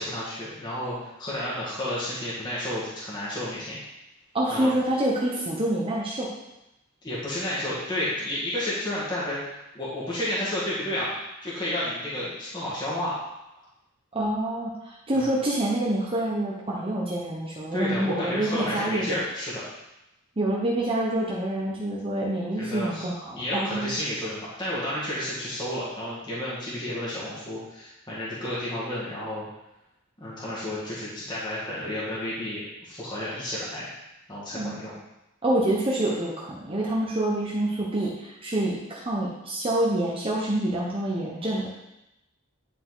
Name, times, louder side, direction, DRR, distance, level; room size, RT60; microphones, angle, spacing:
voice 1, 0.0-3.8 4.5-4.7 7.0-9.4 9.7-11.1 11.4-13.1 15.1-15.3 17.7-19.6 22.6-29.4 30.2-33.9 34.3-34.9, left 1 dB, 20° left, -8 dB, 1.8 m, -31 dB
voice 2, 4.3-6.3 14.1-19.2 20.4-24.0 34.5-34.8 35.4-41.7, right 1 dB, 25° right, -4 dB, 0.9 m, -27 dB
10.0 x 4.1 x 4.0 m, 0.91 s
head